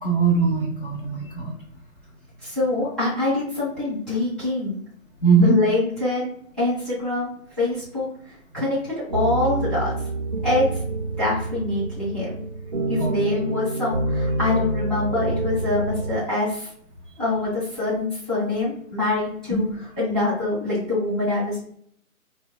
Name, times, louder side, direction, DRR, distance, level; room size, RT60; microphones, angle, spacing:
voice 1, 0.0-1.5 5.2-5.6 13.0-13.1 19.5-19.7, right 4 dB, 40° left, -2 dB, 0.5 m, -20 dB
voice 2, 2.4-4.8 5.4-6.3 6.6-8.1 8.5-9.9 10.4-10.7 11.2-12.4 12.9-16.7 17.2-19.7 20.0-21.6, left 2 dB, ahead, -10 dB, 0.9 m, -24 dB
sound 1, 9.1-16.2, right 2 dB, 35° right, 0.4 m, -27 dB
4.5 x 2.2 x 2.2 m, 0.66 s
figure-of-eight pair, 140°, 43 cm